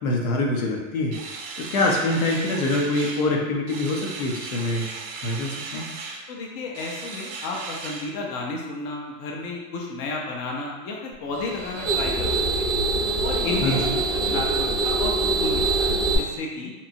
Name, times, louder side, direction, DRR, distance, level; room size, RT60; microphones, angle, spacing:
voice 1, 0.0-1.2 1.6-5.9 13.6-13.8, left 2 dB, 85° left, -1 dB, 0.8 m, -25 dB
sound 1, 1.1-3.3 3.7-6.2 6.7-8.1, right 4 dB, 45° right, 0.4 m, -36 dB
voice 2, 6.3-12.3 12.6-12.8 13.2-14.0 14.3-16.7, left 3 dB, 35° left, -2 dB, 0.4 m, -32 dB
sound 2, 11.3-16.2, right 2 dB, 5° left, 0.8 m, -24 dB
2.9 x 2.2 x 2.6 m, 1.1 s
supercardioid pair, 130°, 42 cm